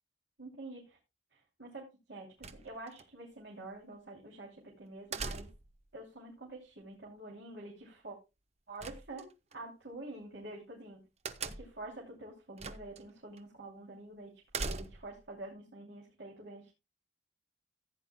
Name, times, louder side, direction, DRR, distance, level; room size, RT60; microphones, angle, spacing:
voice 1, 0.4-1.0 1.3-5.5 5.9-8.2 8.7-11.0 11.4-16.7, right 2 dB, 70° right, -2 dB, 3.0 m, -47 dB
sound 1, 2.4-3.0 5.1-5.8 8.8-9.6 11.2-11.9 12.6-13.0 13.4-13.5 14.5-15.2, right 4 dB, 35° right, 0.8 m, -40 dB
15.5 x 9.4 x 2.2 m, 0.25 s
head